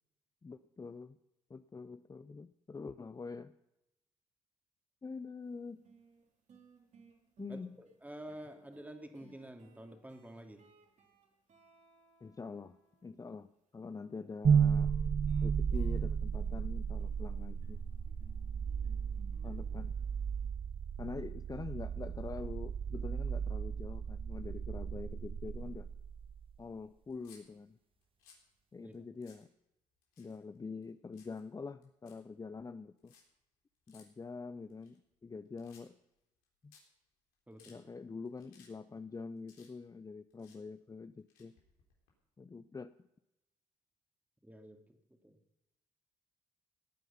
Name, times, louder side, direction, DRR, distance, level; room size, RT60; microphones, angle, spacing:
voice 1, 0.4-1.2 1.5-3.5 5.0-5.9 7.4-7.8 9.2-9.3 12.2-14.9 15.4-17.8 19.4-20.0 21.0-25.9 26.6-27.8 28.7-29.5 30.2-33.1 33.9-36.0 36.6-36.7 37.7-41.6 42.4-42.9, left 4 dB, 25° left, 12 dB, 0.6 m, -45 dB
sound 1, 5.4-5.5 5.8-13.1 14.6-20.5, right 4 dB, 55° right, 3.6 m, -61 dB
voice 2, 8.0-10.6 28.8-28.9 37.5-37.8 44.4-45.0 45.2-45.4, right 1 dB, 10° right, 5 dB, 2.7 m, -49 dB
sound 2, 14.4-26.5, right 7 dB, 40° right, 0.6 m, -34 dB
sound 3, 27.1-27.4 28.0-28.5 28.9-29.0 29.2-29.5 30.0-30.6 30.8-31.4 31.8-32.2 33.0-33.2 33.9-34.0 34.7-35.3 35.6-36.1 36.4-36.5 36.7-36.8 37.3-37.8 38.3-38.7 39.0-40.0 40.3-40.6 41.2-42.1, left 6 dB, 85° left, 3.9 m, -63 dB
18.0 x 9.2 x 5.7 m, 0.89 s
hypercardioid pair, 55°, 14 cm